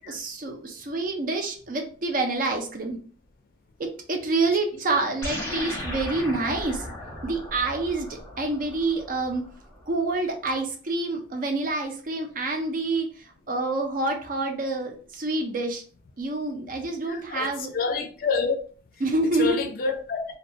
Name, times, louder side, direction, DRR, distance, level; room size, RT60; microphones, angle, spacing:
voice 1, 0.1-3.0 3.8-6.8 7.2-9.5 9.9-15.8 16.2-17.7 19.0-19.6, right 2 dB, 45° right, 0.5 m, -27 dB
sound 1, 5.2-9.9, left 1 dB, 15° left, 0.7 m, -36 dB
voice 2, 17.1-18.6 19.4-20.2, left 5 dB, 50° left, 0.4 m, -28 dB
2.3 x 2.2 x 2.7 m
head